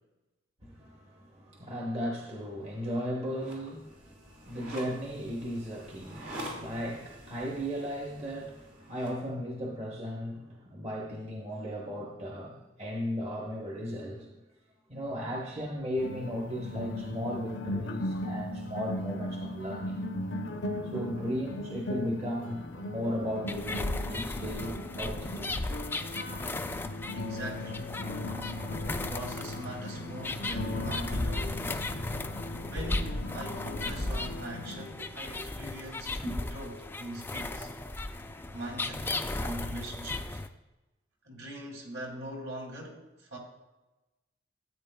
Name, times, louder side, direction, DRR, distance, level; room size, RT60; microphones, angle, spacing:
voice 1, 0.6-14.4 14.9-20.0 20.5-20.6 20.8-25.6 32.2-32.7 35.4-35.5 36.2-36.5, equal, 35° right, -2 dB, 1.0 m, -36 dB
sound 1, 3.3-9.2, equal, 85° right, 3.0 m, -46 dB
sound 2, 16.0-34.9, left 1 dB, 70° left, 0.6 m, -38 dB
sound 3, 23.5-40.5, left 2 dB, 10° left, 0.3 m, -36 dB
voice 2, 27.1-27.9 29.1-31.9 32.6-37.7 38.5-40.4 41.2-43.4, right 1 dB, 70° right, 0 dB, 2.4 m, -42 dB
13.5 x 8.6 x 2.2 m, 1.1 s
head